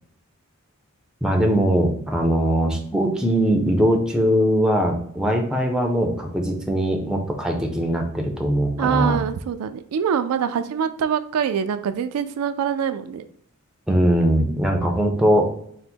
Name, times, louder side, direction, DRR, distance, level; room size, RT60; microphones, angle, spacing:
voice 1, 1.2-9.2 13.9-15.5, equal, 5° right, 2 dB, 0.5 m, -21 dB
voice 2, 8.8-13.3, right 7 dB, 80° right, 10 dB, 0.3 m, -24 dB
3.9 x 2.1 x 4.3 m, 0.65 s
head